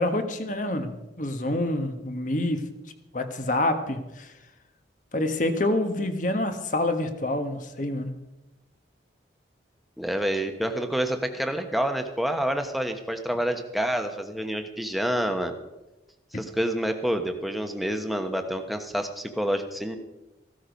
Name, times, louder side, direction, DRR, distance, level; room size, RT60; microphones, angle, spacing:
voice 1, 0.0-2.6 3.1-4.3 5.1-8.1, left 1 dB, 45° left, 7 dB, 1.4 m, -27 dB
voice 2, 10.0-15.5 16.3-20.0, equal, ahead, 5 dB, 1.2 m, -28 dB
15.5 x 13.0 x 5.3 m, 1.0 s
head